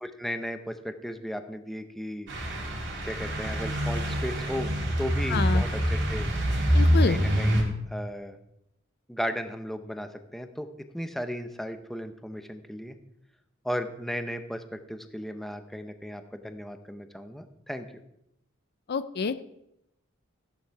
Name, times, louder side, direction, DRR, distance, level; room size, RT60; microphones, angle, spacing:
voice 1, 0.0-2.3 3.0-4.7 5.0-6.3 7.0-8.4 9.1-10.7 10.9-13.0 13.6-17.9, equal, ahead, 8 dB, 0.8 m, -35 dB
sound 1, 2.3-7.6, equal, 60° right, 2.9 m, -25 dB
voice 2, 5.3-5.6 6.7-7.2 18.9-19.4, left 5 dB, 50° left, 13 dB, 0.5 m, -27 dB
14.5 x 10.5 x 4.7 m, 0.82 s
head